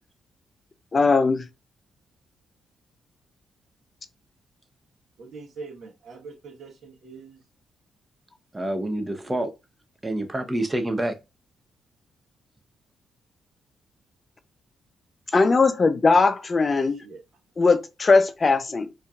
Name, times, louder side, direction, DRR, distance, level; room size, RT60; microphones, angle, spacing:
voice 1, 0.9-1.4 15.3-17.0 17.6-18.9, left 4 dB, 40° left, 0.6 m, -19 dB
voice 2, 5.2-7.4 16.9-17.2, right 4 dB, 60° right, 1.2 m, -43 dB
voice 3, 8.5-9.5 10.0-11.1, right 1 dB, 20° right, 0.8 m, -27 dB
4.4 x 2.7 x 2.4 m
hypercardioid pair, 45°, 0 cm